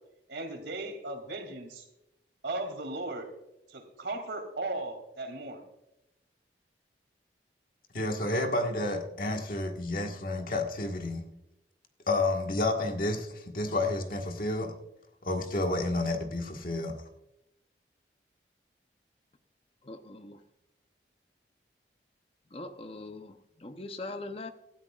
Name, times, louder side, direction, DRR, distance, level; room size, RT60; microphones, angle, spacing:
voice 1, 0.3-1.9 2.4-3.3 3.7-5.6, right 2 dB, 90° right, 2.8 m, -37 dB
voice 2, 7.9-11.3 12.1-14.7 15.2-17.0, left 2 dB, 50° left, 1.6 m, -30 dB
voice 3, 19.8-20.4 22.5-24.5, left 2 dB, 35° left, 0.8 m, -41 dB
18.5 x 12.5 x 2.4 m
head